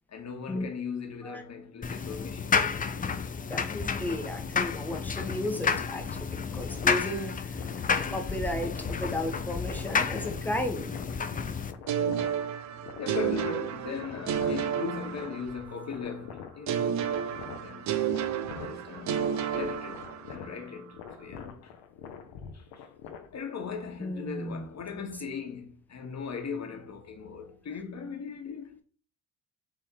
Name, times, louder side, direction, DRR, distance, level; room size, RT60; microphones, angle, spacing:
voice 1, 0.1-2.7 11.9-12.4 13.0-16.9 17.5-18.1 18.5-21.8 22.5-22.9 23.3-28.8, left 5 dB, 40° left, 1.3 m, -39 dB
sound 1, 1.8-11.7, left 5 dB, 20° left, 0.5 m, -31 dB
voice 2, 3.5-10.9 24.0-24.7 25.0-25.1, left 1 dB, 5° left, 1.0 m, -34 dB
sound 2, 4.9-23.6, left 7 dB, 70° left, 0.8 m, -46 dB
sound 3, 11.9-15.8 16.7-20.5, right 9 dB, 45° right, 0.5 m, -31 dB
4.2 x 3.1 x 3.8 m
hypercardioid pair, 55°, 44 cm